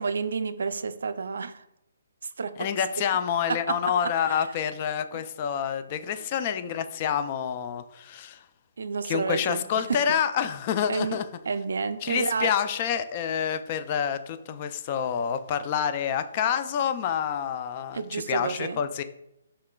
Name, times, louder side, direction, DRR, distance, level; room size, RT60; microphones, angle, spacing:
voice 1, 0.0-1.6 2.2-2.5 3.5-3.8 4.3-4.5 5.1-5.2 6.2-6.3 8.8-9.6 9.9-10.0 10.9-11.2 11.5-12.5 17.9-18.8, right 5 dB, 75° right, 12 dB, 0.3 m, -30 dB
voice 2, 2.6-8.4 9.0-11.2 12.0-19.0, left 8 dB, 35° left, 11 dB, 0.3 m, -28 dB
5.8 x 3.2 x 2.2 m, 0.84 s
hypercardioid pair, 150°, 0 cm